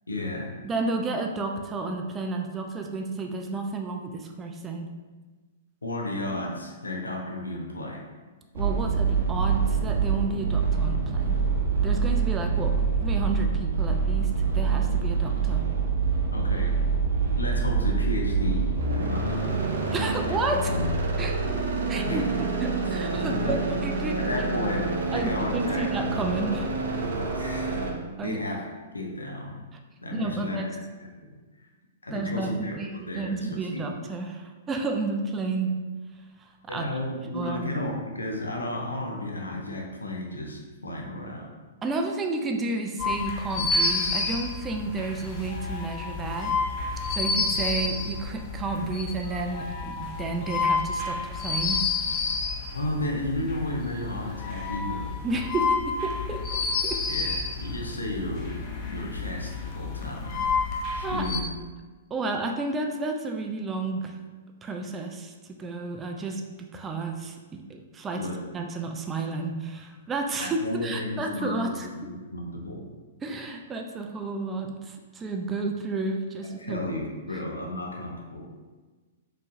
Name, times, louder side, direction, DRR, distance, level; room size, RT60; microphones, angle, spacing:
voice 1, 0.1-0.5 5.8-8.0 16.3-16.8 17.4-19.7 20.3-20.4 20.7-20.9 21.2-21.6 22.0-23.0 23.3-23.6 24.2-25.9 27.0-27.8 28.2-28.6 28.9-29.6 30.0-30.8 31.3-31.4 32.0-33.9 36.7-41.5 52.7-55.1 57.1-61.4 68.1-68.4 70.4-72.9 76.6-78.5, left 1 dB, 85° left, 0 dB, 0.7 m, -33 dB
voice 2, 0.6-5.0 8.5-11.4 11.8-15.7 19.9-20.7 21.2-21.4 21.9-24.2 25.1-26.7 28.2-28.4 30.1-30.8 32.1-35.9 36.7-36.9 37.3-37.6 41.8-46.6 47.1-51.9 55.2-56.4 56.8-57.0 61.0-61.2 62.1-64.1 64.6-71.9 73.2-76.9, right 3 dB, 20° right, 3 dB, 0.4 m, -31 dB
sound 1, 8.5-27.9, right 4 dB, 70° right, 0.7 m, -26 dB
sound 2, 43.0-61.4, left 4 dB, 35° left, 0.6 m, -30 dB
4.4 x 3.1 x 2.6 m, 1.3 s
figure-of-eight pair, 110°, 0 cm